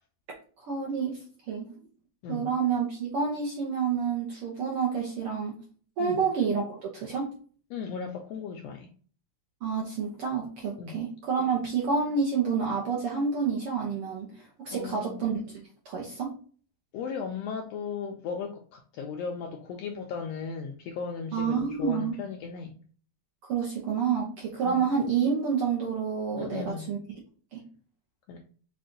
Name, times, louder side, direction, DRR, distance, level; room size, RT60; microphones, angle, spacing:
voice 1, 0.6-1.7 2.3-5.6 6.0-7.3 9.6-16.3 21.3-22.1 23.4-27.0 27.5-27.6, right 6 dB, 70° right, -2 dB, 1.3 m, -29 dB
voice 2, 7.7-8.9 10.8-11.0 14.7-15.3 16.9-22.7 24.6-24.8 26.4-26.9 28.3-28.4, left 6 dB, 80° left, 2 dB, 1.5 m, -36 dB
5.3 x 2.3 x 3.7 m, 0.43 s
omnidirectional pair, 3.4 m